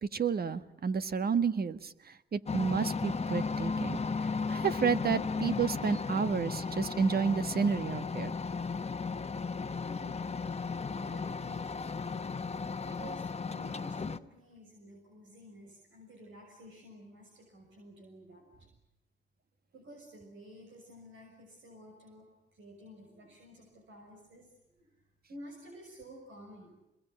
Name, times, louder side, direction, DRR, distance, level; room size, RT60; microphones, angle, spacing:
voice 1, 0.0-4.0 4.5-8.3, right 5 dB, 55° right, 11 dB, 1.6 m, -31 dB
sound 1, 2.5-14.2, left 4 dB, 35° left, 1.2 m, -35 dB
voice 2, 9.6-12.1 12.8-18.7 19.7-24.5 24.8-25.0 25.3-26.7, right 1 dB, 85° right, 1 dB, 6.4 m, -52 dB
27.5 x 22.0 x 9.3 m, 0.92 s
cardioid pair, 60°, 19 cm